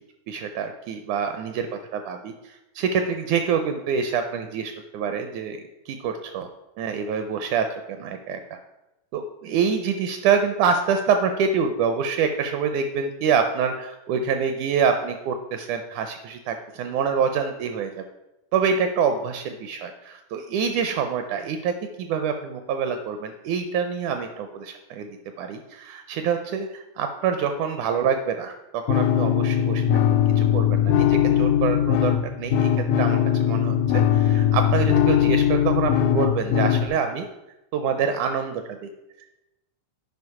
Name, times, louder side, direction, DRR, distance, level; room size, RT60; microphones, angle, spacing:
voice 1, 0.3-5.6 5.9-6.5 6.8-8.6 9.1-18.0 18.5-32.7 32.9-37.3 37.7-38.6, right 6 dB, 80° right, 7 dB, 1.8 m, -26 dB
sound 1, 28.9-36.9, left 10 dB, 75° left, 1.9 m, -20 dB
9.5 x 5.1 x 4.7 m, 0.95 s
omnidirectional pair, 3.9 m